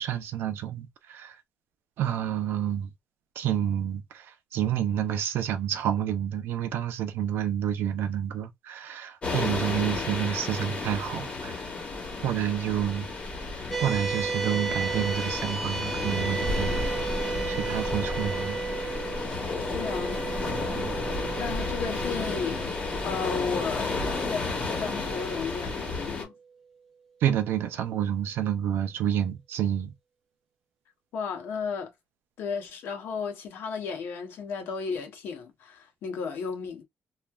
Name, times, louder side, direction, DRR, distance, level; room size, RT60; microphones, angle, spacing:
voice 1, 0.0-1.4 2.0-2.9 3.4-11.6 12.2-13.1 13.8-18.6 20.7-20.9 27.2-29.9, right 10 dB, 85° right, 0.5 m, -29 dB
sound 1, 9.2-26.2, left 3 dB, 30° left, 1.0 m, -32 dB
sound 2, 13.7-26.3, right 5 dB, ahead, 0.5 m, -35 dB
voice 2, 19.7-20.6 21.4-26.3 31.1-31.9 32.4-36.8, left 5 dB, 85° left, 0.9 m, -34 dB
3.1 x 2.2 x 2.3 m
cardioid pair, 150°, 4 cm